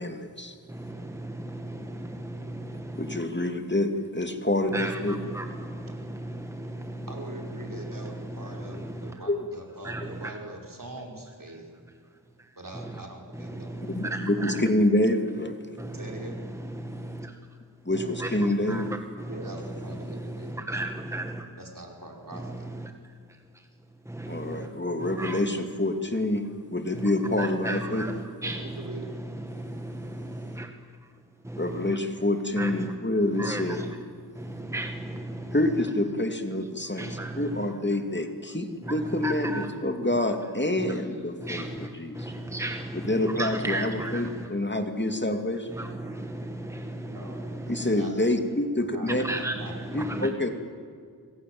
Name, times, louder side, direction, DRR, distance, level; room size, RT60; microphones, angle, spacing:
voice 1, 0.0-0.5 2.9-5.2 9.3-9.5 13.9-15.5 17.9-18.9 19.9-20.0 24.3-26.4 26.7-28.1 31.6-33.8 35.5-42.3 42.9-45.7 47.7-49.2 49.9-50.5, left 1 dB, 30° left, 6 dB, 2.6 m, -27 dB
voice 2, 0.7-3.2 4.7-7.1 7.5-9.2 9.8-10.3 12.4-12.5 12.7-13.0 13.3-14.7 15.8-17.4 18.2-21.5 22.3-22.9 23.5-23.6 24.1-24.7 25.0-25.4 26.9-30.7 31.4-32.0 32.6-33.0 33.3-34.0 34.3-35.6 37.0-37.7 38.8-39.7 40.8-41.0 41.4-44.5 45.7-48.0 49.1-50.3, right 1 dB, 5° right, 5 dB, 1.8 m, -35 dB
voice 3, 7.1-11.7 12.6-13.7 15.9-16.4 19.3-20.9 21.6-22.7 28.4-29.2 47.0-47.4 48.0-48.1 48.8-49.8, right 1 dB, 55° right, 1 dB, 5.4 m, -42 dB
27.0 x 23.5 x 7.9 m, 2.1 s
wide cardioid pair, 45°, 38 cm